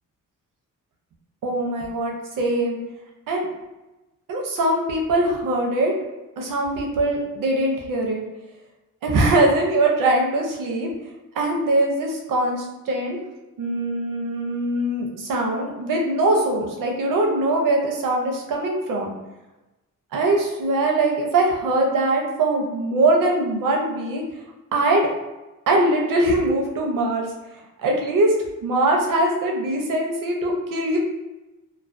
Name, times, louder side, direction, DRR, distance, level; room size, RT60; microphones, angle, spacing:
voice 1, 1.4-2.8 3.3-3.5 4.3-5.9 6.4-8.2 9.0-10.9 11.4-13.2 13.6-19.1 20.1-24.2 24.7-25.1 25.7-27.3 27.8-28.3 28.6-31.0, right 2 dB, 75° right, 1 dB, 0.6 m, -22 dB
2.3 x 2.1 x 2.4 m, 1.1 s
wide cardioid pair, 170°, 33 cm